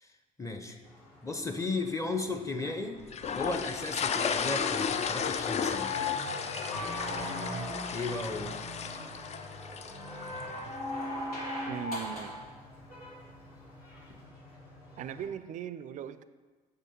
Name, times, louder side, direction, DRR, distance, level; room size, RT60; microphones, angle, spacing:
voice 1, 0.4-0.8 1.2-3.0 3.4-5.9 7.9-8.5, left 3 dB, 15° left, 6 dB, 0.8 m, -34 dB
Truck / Accelerating revving vroom, 0.8-15.3, left 1 dB, 55° left, 2.4 m, -47 dB
sound 1, 3.1-10.4, left 6 dB, 35° left, 0.5 m, -34 dB
sound 2, 5.6-8.1 10.0-12.5 14.1-14.2, left 2 dB, 90° left, 1.4 m, -37 dB
voice 2, 11.6-12.3 15.0-16.2, right 9 dB, 45° right, 14 dB, 0.4 m, -39 dB
7.6 x 6.5 x 3.9 m, 1.4 s
figure-of-eight pair, 50°, 19 cm